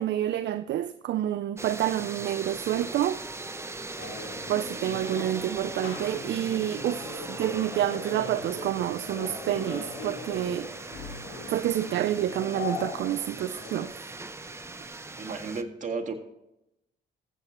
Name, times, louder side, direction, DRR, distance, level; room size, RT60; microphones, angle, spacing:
voice 1, 0.0-3.2 4.5-10.7 11.5-14.1, right 12 dB, 65° right, 0.4 m, -28 dB
sound 1, 1.6-15.6, right 2 dB, 15° right, 0.7 m, -40 dB
sound 2, 4.0-13.9, left 3 dB, 85° left, 3.6 m, -40 dB
voice 2, 15.2-16.1, right 4 dB, 40° right, 1.8 m, -35 dB
15.0 x 8.0 x 3.0 m
cardioid pair, 90°, 20 cm